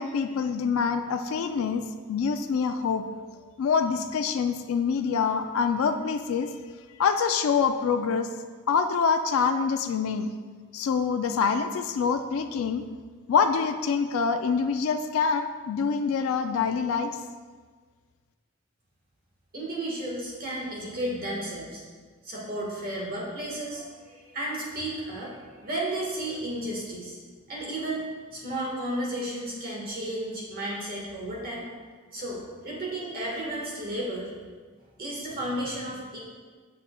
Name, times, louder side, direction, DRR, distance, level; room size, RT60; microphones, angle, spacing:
voice 1, 0.0-3.1 3.6-6.5 7.0-8.3 8.7-10.3 10.7-12.8 13.3-17.1, left 5 dB, 75° left, 8 dB, 0.3 m, -25 dB
voice 2, 19.5-21.8 22.2-27.2 27.5-31.7 32.1-34.3 35.0-36.2, right 1 dB, 45° right, -4 dB, 1.5 m, -33 dB
7.0 x 6.1 x 2.2 m, 1.5 s
head